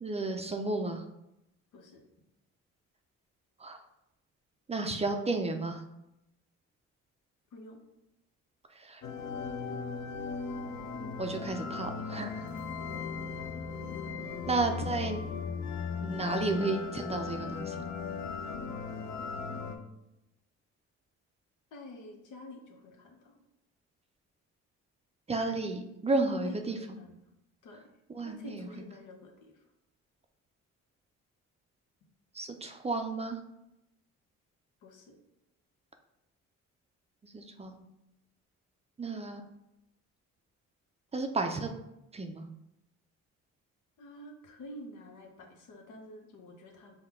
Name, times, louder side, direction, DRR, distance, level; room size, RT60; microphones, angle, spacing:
voice 1, 0.0-1.0 3.6-3.8 4.7-5.8 8.7-9.0 11.2-12.4 14.5-15.2 16.0-17.8 25.3-26.8 28.1-28.7 32.3-33.4 37.2-37.8 39.0-39.4 41.1-41.7 42.1-42.5, right 3 dB, 20° right, 5 dB, 0.4 m, -32 dB
sound 1, 9.0-19.8, left 5 dB, 65° left, 0.6 m, -37 dB
voice 2, 19.6-20.0 21.7-23.4 26.1-27.2 27.6-27.9 28.2-29.6 34.8-35.2 44.0-47.0, left 2 dB, 80° left, 1 dB, 0.9 m, -48 dB
5.6 x 2.2 x 3.5 m, 0.88 s
cardioid pair, 90°, 30 cm